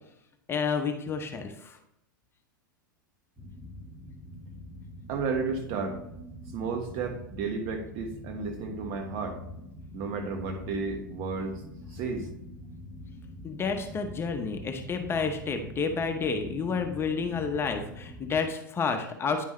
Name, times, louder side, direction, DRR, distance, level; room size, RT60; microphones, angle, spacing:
voice 1, 0.5-1.8 13.4-19.4, left 5 dB, 20° left, 5 dB, 0.9 m, -30 dB
sound 1, 3.4-18.5, left 1 dB, 5° right, 2.3 m, -44 dB
voice 2, 5.1-6.0 6.5-9.4 9.9-11.6 11.9-12.3, right 4 dB, 50° right, 4 dB, 1.5 m, -32 dB
9.8 x 5.4 x 3.2 m, 0.80 s
hypercardioid pair, 105°, 11 cm